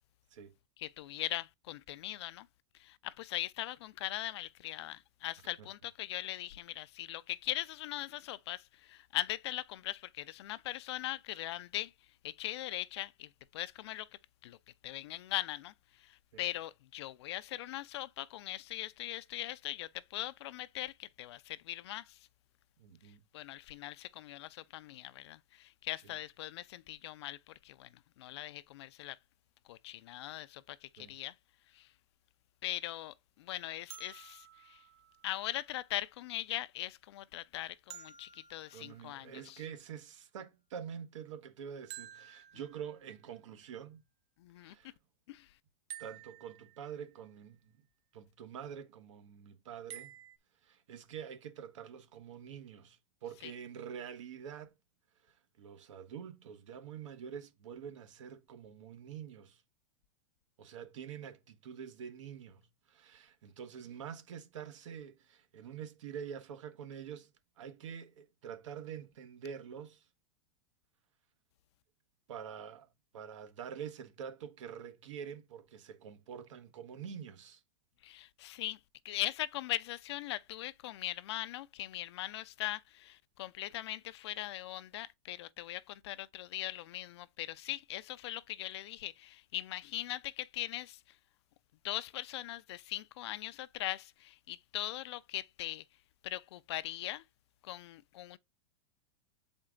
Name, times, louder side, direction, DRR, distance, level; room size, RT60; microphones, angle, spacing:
voice 1, 0.8-2.5 2.7-11.9 12.2-14.1 14.4-14.6 14.8-22.3 23.0-29.2 29.7-31.4 31.7-31.9 32.6-34.8 35.2-39.6 44.4-44.9 45.3-45.5 53.4-53.5 78.0-78.8 79.0-91.2 91.8-95.8 96.2-97.2 97.6-98.4, left 15 dB, 60° left, 0.4 m, -40 dB
voice 2, 22.8-23.3 31.0-31.1 38.7-44.0 44.6-44.9 46.0-47.8 48.1-50.2 50.6-54.7 55.2-59.6 60.6-67.3 67.6-70.1 72.3-72.9 73.1-77.6, right 8 dB, 80° right, 1.3 m, -46 dB
sound 1, 33.9-35.9 37.9-39.7 41.9-43.3 45.9-47.2 49.9-50.4, right 10 dB, 40° right, 0.6 m, -52 dB
7.1 x 4.4 x 3.7 m
supercardioid pair, 165°, 16 cm